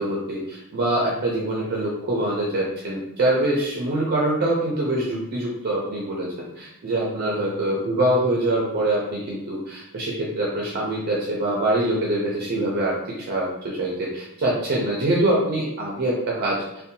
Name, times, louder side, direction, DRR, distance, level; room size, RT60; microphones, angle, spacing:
voice 1, 0.0-6.3 6.6-16.8, right 1 dB, 45° right, -4 dB, 0.4 m, -24 dB
2.6 x 2.1 x 2.6 m, 0.83 s
head